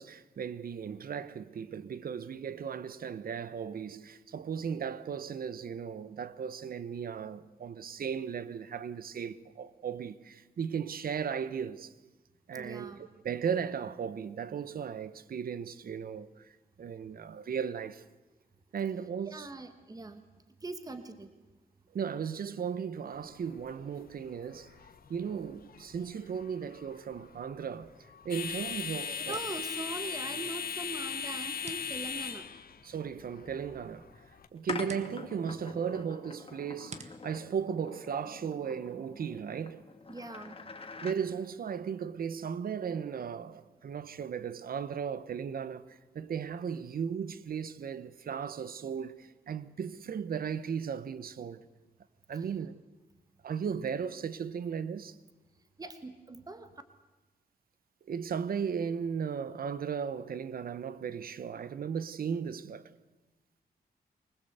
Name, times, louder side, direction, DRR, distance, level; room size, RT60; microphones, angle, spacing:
voice 1, 0.0-11.9 12.5-16.5 16.8-18.0 18.7-19.5 21.9-24.7 25.1-27.9 28.2-29.4 32.8-34.1 34.5-39.8 41.0-51.6 52.3-52.8 53.4-55.2 58.1-62.9, right 7 dB, 60° right, 1.0 m, -36 dB
voice 2, 12.5-13.0 19.2-20.2 20.6-21.3 29.1-32.5 40.1-40.6 52.3-52.5 55.8-56.7, right 2 dB, 20° right, 1.4 m, -42 dB
sound 1, 23.1-34.5, left 7 dB, 65° left, 1.2 m, -40 dB
sound 2, 27.5-38.5, right 4 dB, 45° right, 1.7 m, -56 dB
sound 3, 34.7-41.2, left 4 dB, 35° left, 2.3 m, -45 dB
24.5 x 19.5 x 8.1 m
wide cardioid pair, 110°, 17 cm